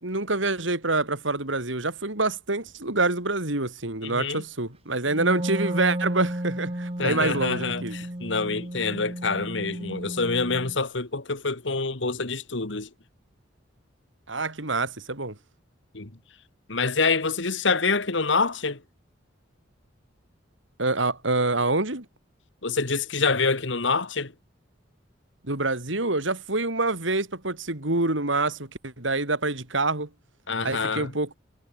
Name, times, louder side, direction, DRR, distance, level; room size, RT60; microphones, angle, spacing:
voice 1, 0.0-8.0 14.3-15.4 20.8-22.0 25.4-30.1 30.6-31.4, right 2 dB, 75° right, 4.2 m, -26 dB
voice 2, 4.0-4.4 7.0-12.9 15.9-16.1 16.7-18.8 22.6-24.3 30.5-31.1, left 4 dB, 65° left, 1.8 m, -26 dB
Wind instrument woodwind instrument, 5.1-10.8, right 1 dB, 30° right, 2.4 m, -33 dB
head